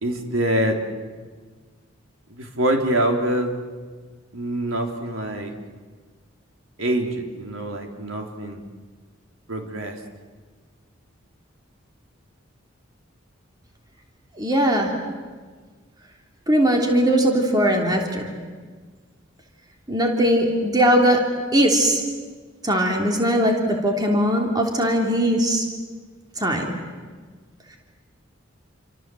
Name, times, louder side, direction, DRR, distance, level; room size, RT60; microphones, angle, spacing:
voice 1, 0.0-0.8 2.3-3.5 4.3-5.5 6.8-8.6 9.5-10.0, right 1 dB, 85° right, 3 dB, 3.4 m, -25 dB
voice 2, 14.4-14.9 16.5-18.3 19.9-21.2 21.5-22.0 22.6-25.6 26.4-26.8, equal, 20° right, 1 dB, 3.2 m, -20 dB
28.5 x 25.5 x 7.7 m, 1.5 s
head